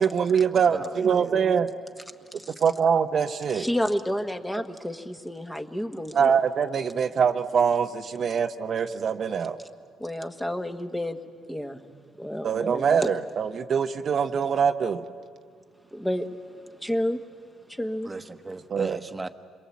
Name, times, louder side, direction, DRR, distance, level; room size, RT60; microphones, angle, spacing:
voice 1, 0.0-1.7 2.6-3.7 6.1-9.6 12.4-15.1 18.7-19.0, right 7 dB, 55° right, 8 dB, 0.8 m, -24 dB
voice 2, 0.7-1.4 18.0-19.3, right 3 dB, 20° right, 9 dB, 1.2 m, -37 dB
voice 3, 3.5-6.4 10.0-11.2 11.5-11.9 12.2-13.1 15.9-16.3 16.8-17.2 17.8-18.1, equal, 10° left, 6 dB, 1.4 m, -30 dB
27.5 x 22.0 x 8.4 m, 2.1 s
cardioid pair, 90°, 0 cm